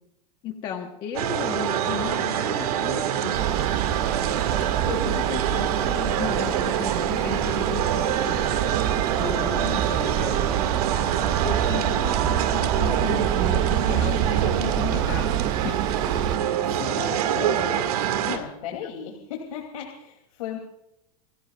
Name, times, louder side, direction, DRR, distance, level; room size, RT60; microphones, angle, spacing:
voice 1, 0.4-3.4 4.9-8.6 9.1-10.7 11.4-15.3 15.6-15.8, left 8 dB, 25° left, 2 dB, 1.3 m, -34 dB
sound 1, 1.1-18.4, right 9 dB, 80° right, 2.3 m, -25 dB
sound 2, 3.3-16.4, right 11 dB, 20° right, 0.4 m, -27 dB
voice 2, 16.6-20.6, left 8 dB, 75° left, 1 dB, 3.2 m, -36 dB
28.5 x 15.5 x 2.5 m, 0.83 s
supercardioid pair, 175°, 19 cm